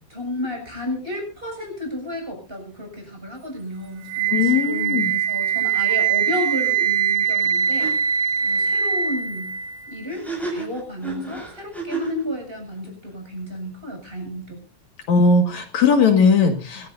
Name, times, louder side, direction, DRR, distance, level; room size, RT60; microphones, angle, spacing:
voice 1, 0.1-8.0 8.4-9.5 9.9-10.2 10.5-14.6, left 1 dB, 15° right, 2 dB, 7.3 m, -32 dB
Wind instrument woodwind instrument, 4.1-10.1, right 8 dB, 85° right, 3.2 m, -22 dB
voice 2, 4.3-5.1 15.1-16.9, left 4 dB, 65° left, 4 dB, 3.2 m, -18 dB
sound 1, 7.4-7.5 7.8-7.9 10.1-12.2, right 3 dB, ahead, 6.3 m, -31 dB
25.0 x 15.5 x 2.7 m, 0.34 s
omnidirectional pair, 3.5 m